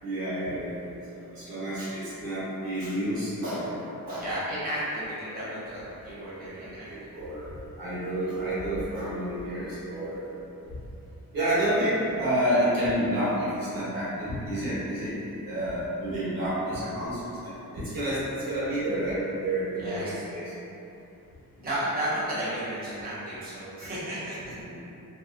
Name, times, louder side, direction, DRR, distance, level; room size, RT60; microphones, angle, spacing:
voice 1, 0.0-0.8 1.3-3.8 4.1-4.3 5.8-5.9 6.5-10.3 11.3-15.1 15.4-20.5 24.4-24.8, right 1 dB, 75° right, -11 dB, 1.1 m, -29 dB
voice 2, 4.2-7.1 19.7-20.2 21.6-24.5, right 1 dB, 25° right, -11 dB, 0.7 m, -33 dB
2.7 x 2.2 x 2.4 m, 2.9 s
wide cardioid pair, 105°, 35 cm